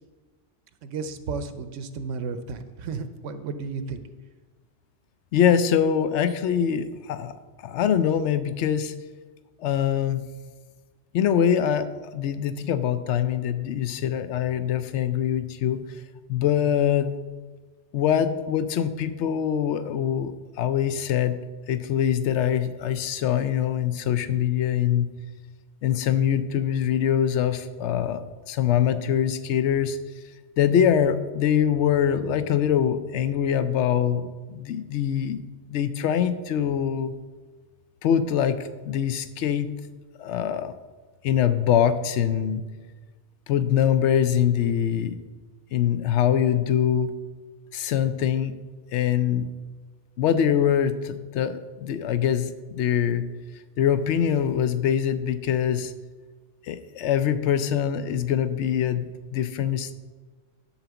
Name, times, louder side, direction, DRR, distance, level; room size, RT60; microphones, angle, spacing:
voice 1, 0.8-4.0, right 4 dB, 80° right, 10 dB, 1.0 m, -33 dB
voice 2, 5.3-7.3 7.6-8.9 9.6-10.2 11.1-15.8 16.3-17.1 17.9-20.3 20.6-21.4 21.7-25.1 25.8-30.0 30.6-35.4 35.7-37.1 38.0-39.7 40.2-40.7 41.2-42.6 43.5-45.2 45.7-47.1 47.7-48.5 48.9-49.5 50.2-53.3 53.8-55.9 56.6-59.9, left 9 dB, 70° left, 11 dB, 0.9 m, -23 dB
11.5 x 4.0 x 6.9 m, 1.3 s
omnidirectional pair, 1.3 m